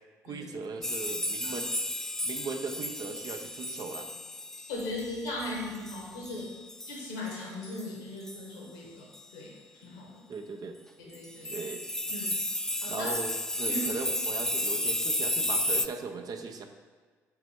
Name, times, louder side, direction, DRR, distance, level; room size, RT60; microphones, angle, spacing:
voice 1, 0.2-1.7 2.2-4.1 10.3-10.8 11.5-11.8 12.9-16.7, right 4 dB, 45° right, 5 dB, 0.7 m, -38 dB
sound 1, 0.8-7.0 7.3-7.4 7.6-7.9 8.3-8.4 9.1-9.2 11.1-15.9, left 1 dB, 5° left, 0.3 m, -33 dB
voice 2, 4.7-6.5 6.9-9.5 9.8-10.3 11.0-11.6 12.1-12.3 12.8-13.1 13.7-13.8, left 2 dB, 80° left, -1 dB, 1.7 m, -38 dB
6.8 x 4.2 x 4.7 m, 1.5 s
figure-of-eight pair, 45°, 9 cm